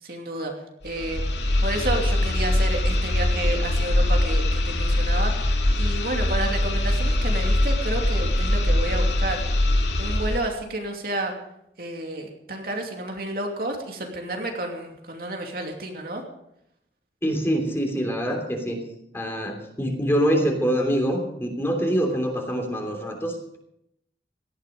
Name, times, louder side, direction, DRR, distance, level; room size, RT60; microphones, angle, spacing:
voice 1, 0.0-0.5 0.8-1.2 1.6-5.5 5.8-9.4 10.0-11.3 11.8-16.2, right 2 dB, 55° right, 2 dB, 2.7 m, -30 dB
sound 1, 0.8-10.5, left 1 dB, 80° left, 2.5 m, -22 dB
voice 2, 17.2-18.8 19.1-23.6, equal, 15° left, 2 dB, 3.2 m, -25 dB
18.0 x 13.5 x 5.3 m, 0.79 s
head